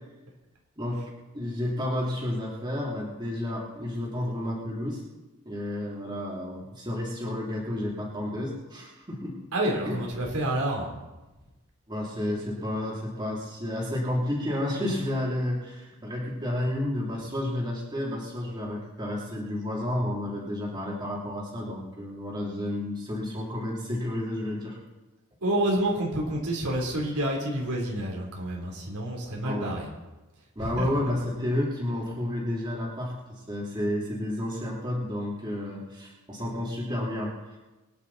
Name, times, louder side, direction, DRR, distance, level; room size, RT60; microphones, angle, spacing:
voice 1, 1.3-5.0 5.4-9.5 9.8-10.0 11.9-24.8 29.4-29.8 30.5-37.3, left 1 dB, 20° right, -4 dB, 3.1 m, -31 dB
voice 2, 9.5-10.9 25.4-29.9 30.6-30.9, right 1 dB, 85° right, -1 dB, 3.7 m, -28 dB
23.5 x 10.0 x 4.2 m, 1.1 s
head